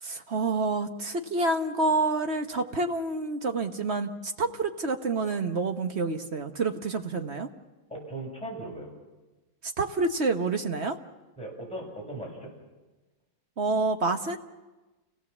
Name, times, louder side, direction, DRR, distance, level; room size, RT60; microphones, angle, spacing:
voice 1, 0.0-7.5 9.6-11.0 13.6-14.4, right 3 dB, 45° right, 6 dB, 1.1 m, -28 dB
voice 2, 7.9-8.9 11.4-12.5, right 1 dB, 5° left, -3 dB, 7.2 m, -38 dB
29.0 x 18.0 x 7.2 m, 1.2 s
omnidirectional pair, 2.1 m